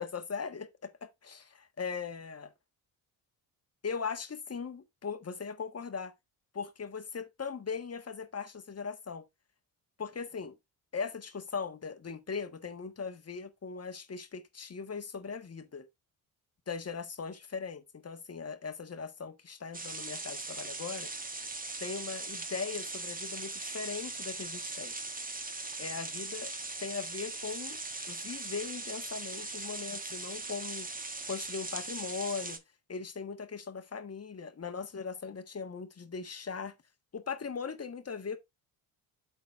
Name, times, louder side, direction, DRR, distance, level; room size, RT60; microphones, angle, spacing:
voice 1, 0.0-2.5 3.8-6.1 6.5-9.2 10.0-10.6 10.9-15.8 16.7-21.1 21.8-24.9 25.8-26.5 26.8-27.8 28.1-30.9 31.3-32.6 32.9-36.7 37.1-38.4, left 5 dB, 30° left, 1.4 m, -39 dB
sound 1, 19.7-32.6, right 3 dB, 15° right, 1.3 m, -40 dB
12.0 x 4.0 x 2.5 m
supercardioid pair, 60°, 48 cm